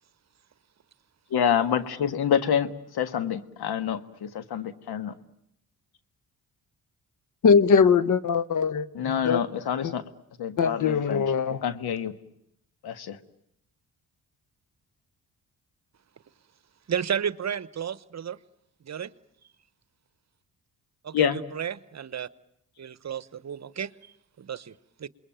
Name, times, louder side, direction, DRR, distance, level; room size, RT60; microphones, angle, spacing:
voice 1, 1.3-2.7 3.0-5.1 9.0-10.0 10.4-11.2 11.6-12.1 12.8-13.2 21.1-21.4, left 8 dB, 80° left, 1.7 m, -27 dB
voice 2, 7.4-9.4 9.8-9.9 10.6-11.6, left 6 dB, 50° left, 1.2 m, -21 dB
voice 3, 16.9-18.4 18.8-19.2 21.0-22.3 22.8-23.9 24.4-24.7 25.0-25.1, right 8 dB, 45° right, 1.0 m, -32 dB
28.0 x 21.5 x 9.1 m
cardioid pair, 80°, 38 cm